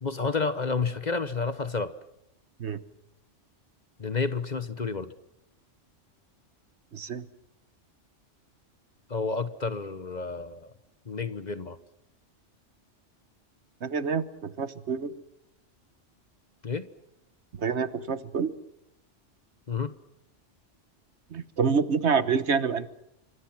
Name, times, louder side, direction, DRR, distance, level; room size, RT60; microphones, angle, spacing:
voice 1, 0.0-2.0 4.0-5.1 9.1-10.7 11.1-11.8 16.6-16.9 19.7-19.9, left 4 dB, 40° left, 13 dB, 1.1 m, -30 dB
voice 2, 6.9-7.2 13.8-15.1 17.6-18.5 21.3-22.9, right 5 dB, 65° right, 14 dB, 1.4 m, -27 dB
28.0 x 25.0 x 6.0 m, 0.80 s
omnidirectional pair, 1.2 m